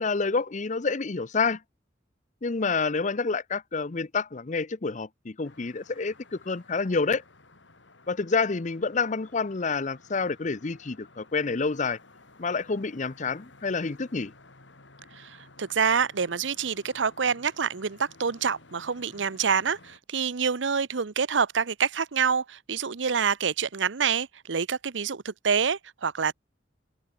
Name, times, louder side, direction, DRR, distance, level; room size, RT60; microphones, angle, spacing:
voice 1, 0.0-1.6 2.4-7.2 8.1-12.0 12.4-14.3, left 4 dB, 40° left, 0.7 m, -28 dB
sound 1, 5.4-20.0, left 2 dB, 80° left, 4.2 m, -55 dB
voice 2, 15.2-26.3, right 6 dB, 80° right, 0.8 m, -27 dB
open air
head